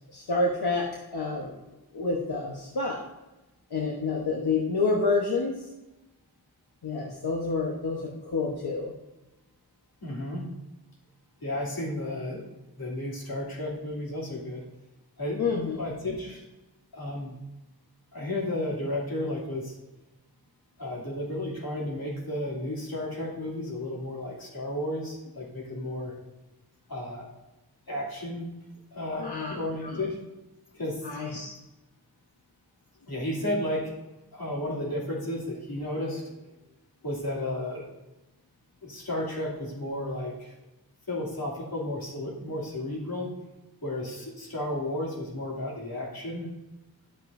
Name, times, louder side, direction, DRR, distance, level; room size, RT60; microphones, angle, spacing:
voice 1, 0.1-1.5 1.9-3.0 3.7-5.7 6.8-8.9 15.4-15.8 29.2-29.5 29.8-30.0 31.0-31.5, left 3 dB, 85° left, -2 dB, 1.1 m, -28 dB
voice 2, 10.0-10.4 11.4-12.4 12.8-14.6 15.2-15.4 15.7-16.4 16.9-17.4 18.1-19.8 20.8-26.1 26.9-27.3 27.9-28.5 28.9-30.2 30.7-31.0 33.1-33.9 34.3-36.2 37.0-37.8 38.8-40.5 41.1-43.3 43.8-46.5, left 1 dB, 70° left, -4 dB, 2.7 m, -33 dB
11.5 x 7.5 x 2.6 m, 1.0 s
wide cardioid pair, 45°, 38 cm